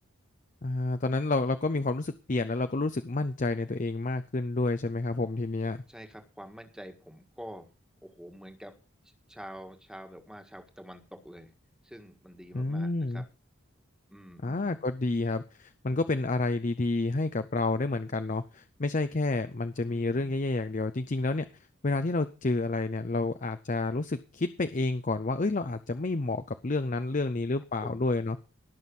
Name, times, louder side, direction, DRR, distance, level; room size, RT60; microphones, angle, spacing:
voice 1, 0.6-5.8 12.5-13.2 14.4-21.5 21.8-28.4, left 2 dB, 40° left, 10 dB, 0.6 m, -29 dB
voice 2, 5.9-7.7 8.0-8.7 9.3-11.5 11.8-13.2 14.1-14.8 19.8-20.3 27.8-28.0, equal, 5° right, 5 dB, 1.7 m, -47 dB
18.5 x 6.3 x 5.4 m, 0.33 s
head